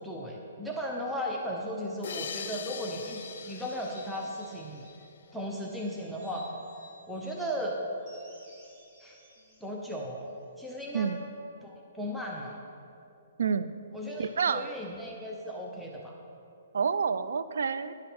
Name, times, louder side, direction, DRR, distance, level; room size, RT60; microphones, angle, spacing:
voice 1, 0.0-3.2 3.5-4.9 5.3-6.4 7.1-7.8 9.0-9.2 9.6-11.1 11.6-12.6 13.9-16.2, equal, ahead, -2 dB, 0.7 m, -36 dB
sound 1, 2.0-5.4, left 7 dB, 65° left, 0.5 m, -42 dB
sound 2, 3.0-5.1 5.5-7.4 8.0-10.5, left 1 dB, 25° right, 2.5 m, -56 dB
voice 2, 13.4-13.7 14.2-14.7 16.7-17.9, right 6 dB, 75° right, 13 dB, 0.4 m, -28 dB
11.0 x 5.7 x 6.0 m, 2.7 s
hypercardioid pair, 155°, 0 cm